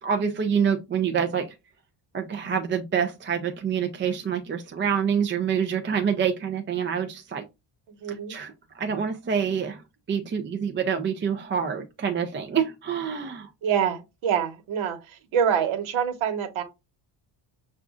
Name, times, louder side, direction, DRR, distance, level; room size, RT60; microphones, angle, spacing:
voice 1, 0.0-1.5 2.1-7.4 8.1-9.8 10.1-13.5, right 7 dB, 25° right, 0.4 m, -26 dB
voice 2, 8.0-8.4 13.6-16.6, right 8 dB, 80° right, 1.1 m, -26 dB
7.0 x 2.5 x 2.4 m
cardioid pair, 130°, 47 cm